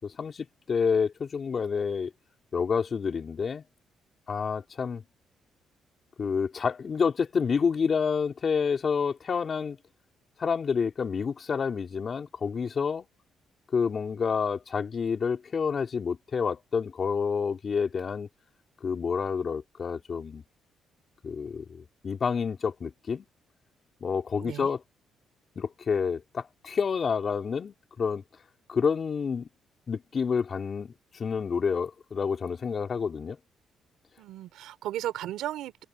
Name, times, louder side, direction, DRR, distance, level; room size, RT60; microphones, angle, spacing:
voice 1, 0.0-2.1 2.5-3.6 4.3-5.0 6.2-9.8 10.4-13.1 13.7-18.3 18.8-20.4 21.2-23.3 24.0-24.8 25.6-28.2 28.7-29.5 29.9-33.4, left 6 dB, 45° left, 3.9 m, -29 dB
voice 2, 24.4-24.7 34.2-35.8, right 13 dB, 85° right, 3.4 m, -35 dB
cardioid pair, 90°, 0 cm